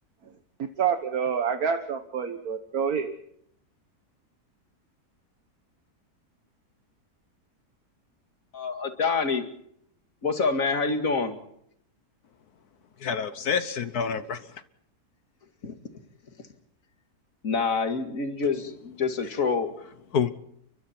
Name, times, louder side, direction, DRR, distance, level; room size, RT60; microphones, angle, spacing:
voice 1, 0.8-3.2, right 7 dB, 65° right, 1.8 m, -27 dB
voice 2, 8.5-9.4 10.2-11.4 15.6-15.7 17.4-19.7, left 4 dB, 55° left, 2.5 m, -26 dB
voice 3, 13.0-14.6 20.1-20.3, left 6 dB, 75° left, 1.6 m, -28 dB
29.5 x 24.5 x 4.4 m
omnidirectional pair, 1.7 m